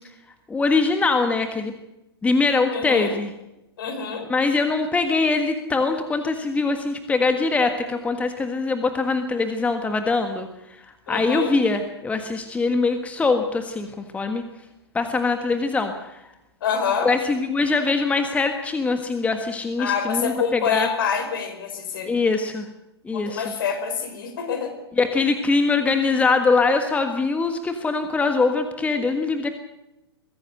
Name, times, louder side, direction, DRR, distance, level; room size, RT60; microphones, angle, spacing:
voice 1, 0.5-1.7 2.2-3.3 4.3-10.5 11.1-14.4 14.9-15.9 17.0-20.9 22.0-22.7 23.0-23.4 25.0-29.5, left 3 dB, 10° left, 7 dB, 1.5 m, -22 dB
voice 2, 2.7-3.1 3.8-4.3 11.1-11.5 16.6-17.1 19.8-22.1 23.1-24.7, left 6 dB, 55° left, 8 dB, 4.8 m, -26 dB
22.5 x 15.5 x 7.9 m, 0.92 s
figure-of-eight pair, 110°, 14 cm